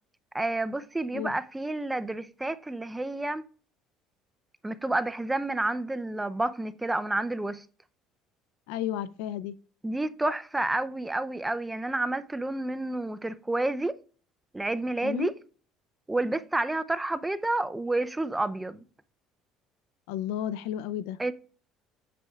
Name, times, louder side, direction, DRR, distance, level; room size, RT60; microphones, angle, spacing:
voice 1, 0.3-3.4 4.6-7.6 9.8-13.9 14.5-15.3 16.1-18.8 21.2-21.3, right 2 dB, 10° right, 0.5 m, -29 dB
voice 2, 8.7-9.6 15.0-15.3 20.1-21.2, left 11 dB, 85° left, 0.4 m, -32 dB
8.4 x 7.6 x 2.4 m
cardioid pair, 110°, 0 cm